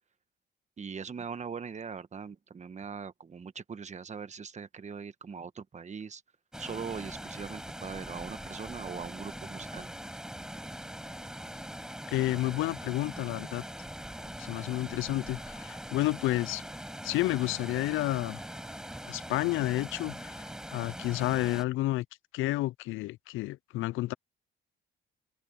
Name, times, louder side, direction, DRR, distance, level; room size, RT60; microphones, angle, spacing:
voice 1, 0.8-6.2 6.6-9.9, right 6 dB, 35° right, 1.3 m, -41 dB
Water, 6.5-21.6, equal, 5° right, 6.5 m, -42 dB
voice 2, 12.1-13.6 14.4-16.6 17.0-18.4 19.1-22.1 22.3-24.1, left 17 dB, 85° left, 0.4 m, -30 dB
open air
cardioid pair, 90°, 20 cm